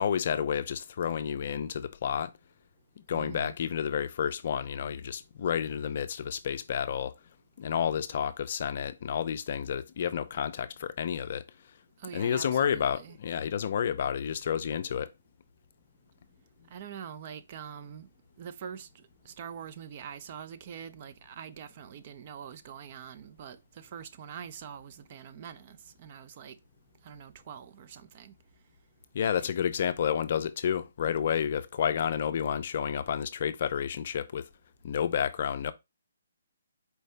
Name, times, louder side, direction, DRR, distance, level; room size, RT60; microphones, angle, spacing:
voice 1, 0.0-2.3 3.0-7.1 7.6-11.4 12.1-15.1 29.1-34.5 34.8-35.7, left 8 dB, 45° left, 0.4 m, -30 dB
voice 2, 3.1-3.5 12.0-13.2 16.7-18.1 18.4-26.6 27.0-28.3 29.3-29.5, right 8 dB, 35° right, 0.4 m, -44 dB
4.5 x 2.6 x 3.3 m
hypercardioid pair, 165°, 0 cm